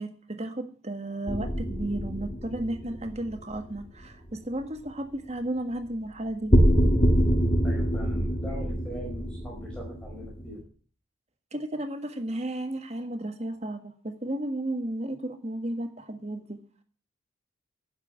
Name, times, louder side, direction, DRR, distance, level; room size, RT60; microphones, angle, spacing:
voice 1, 0.0-6.6 11.5-16.6, right 1 dB, 30° right, 1.6 m, -33 dB
sound 1, 1.3-4.0 6.5-10.6, equal, 25° left, 2.2 m, -25 dB
voice 2, 7.6-10.6, equal, 5° left, 4.7 m, -41 dB
10.5 x 8.8 x 8.8 m
head